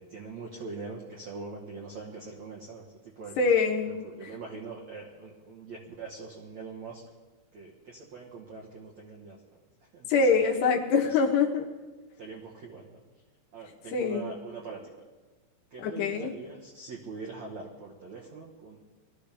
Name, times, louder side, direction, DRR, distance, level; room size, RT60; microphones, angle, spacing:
voice 1, 0.0-3.4 3.8-7.0 7.5-9.4 9.9-10.3 12.2-13.0 13.5-15.1 15.7-18.8, right 4 dB, 65° right, -3 dB, 1.8 m, -43 dB
voice 2, 3.4-4.0 10.1-11.7 13.9-14.2 15.8-16.3, left 5 dB, 70° left, 2 dB, 3.0 m, -24 dB
21.0 x 13.5 x 3.5 m, 1.3 s
omnidirectional pair, 5.3 m